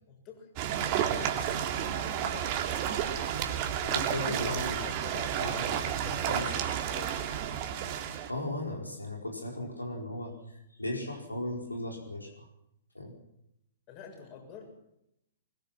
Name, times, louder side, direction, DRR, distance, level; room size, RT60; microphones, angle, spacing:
voice 1, 0.1-0.5 3.0-3.4 3.9-7.3 13.9-14.7, left 5 dB, 30° left, 3 dB, 6.9 m, -48 dB
sound 1, 0.6-8.3, right 9 dB, 35° right, 2.5 m, -31 dB
voice 2, 3.8-4.8 5.4-5.8 6.3-6.5 8.3-10.3 10.8-12.4 12.9-13.1, left 1 dB, 90° left, 1 dB, 4.7 m, -36 dB
23.0 x 21.5 x 6.1 m, 0.80 s
figure-of-eight pair, 115°, 0 cm